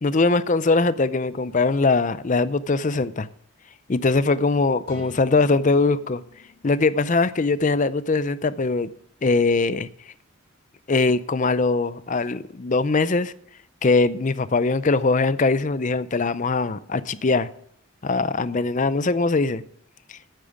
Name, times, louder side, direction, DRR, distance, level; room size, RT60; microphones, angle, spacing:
voice 1, 0.0-3.3 3.9-6.2 6.6-8.9 9.2-9.9 10.9-13.3 13.8-17.5 18.0-19.6 20.1-20.2, left 3 dB, 35° left, 0.5 m, -21 dB
sound 1, 4.8-8.6, left 2 dB, 45° right, 4.8 m, -48 dB
9.1 x 8.7 x 7.1 m
head